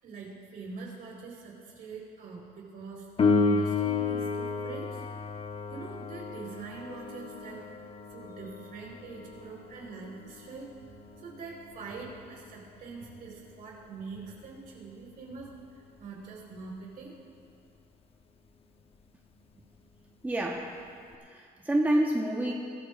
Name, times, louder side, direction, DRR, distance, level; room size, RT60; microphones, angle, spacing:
voice 1, 0.0-5.0 5.7-17.2, right 4 dB, 60° right, -2 dB, 4.1 m, -44 dB
Piano, 3.2-13.6 21.1-21.2, left 4 dB, 35° left, 1.0 m, -32 dB
voice 2, 20.2-20.8 21.2-22.5, right 1 dB, 10° right, -1 dB, 1.1 m, -28 dB
23.0 x 14.0 x 2.5 m, 2.3 s
cardioid pair, 110°, 17 cm